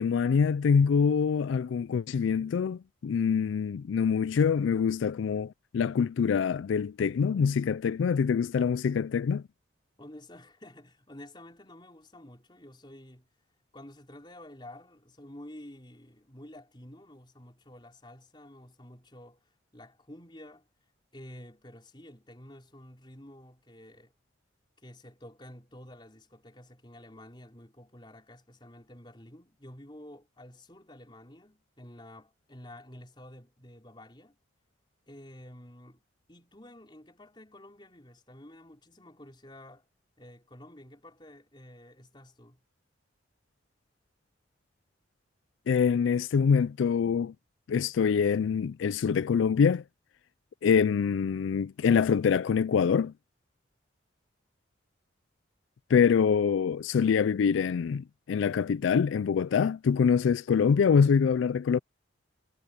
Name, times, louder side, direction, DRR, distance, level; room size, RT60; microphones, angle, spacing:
voice 1, 0.0-9.4 45.7-47.3 47.7-49.8 50.6-53.1 55.9-61.8, left 6 dB, 85° left, 0.4 m, -25 dB
voice 2, 10.0-13.3 13.7-19.4 19.7-20.7 21.1-24.1 24.8-34.4 35.1-36.0 36.3-39.9 40.2-42.6, left 1 dB, 25° left, 4.7 m, -50 dB
head